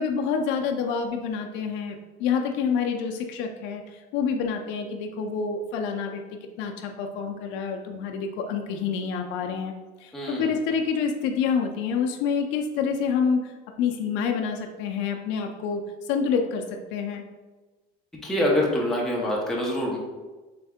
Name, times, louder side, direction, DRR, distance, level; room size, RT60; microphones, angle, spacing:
voice 1, 0.0-6.2 6.6-9.7 10.0-16.6 16.9-17.2, left 6 dB, 65° left, 4 dB, 0.5 m, -27 dB
voice 2, 10.1-10.5 18.2-20.0, left 1 dB, ahead, -4 dB, 0.6 m, -25 dB
3.5 x 3.3 x 3.5 m, 1.2 s
cardioid pair, 160°, 21 cm